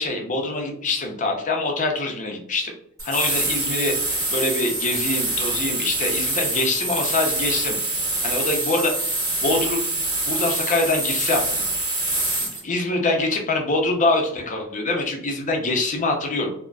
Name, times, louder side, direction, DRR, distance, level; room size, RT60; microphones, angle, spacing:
voice 1, 0.0-2.7 3.0-3.9 4.3-7.8 8.2-8.9 9.4-9.8 10.2-11.4 12.4-16.5, left 2 dB, 35° left, 2 dB, 0.6 m, -24 dB
sound 1, 3.0-12.6, right 2 dB, 15° right, 1.2 m, -25 dB
3.8 x 2.1 x 2.2 m, 0.70 s
head